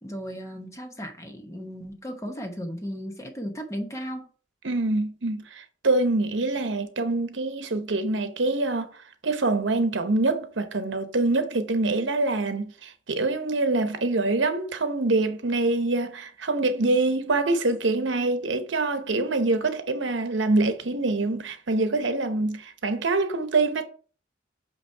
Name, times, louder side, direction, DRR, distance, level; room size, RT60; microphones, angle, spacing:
voice 1, 0.0-4.3, equal, 15° left, 0.9 m, -35 dB
voice 2, 4.6-9.0 9.2-23.8, right 2 dB, 80° right, 0.9 m, -25 dB
8.1 x 3.0 x 4.5 m
head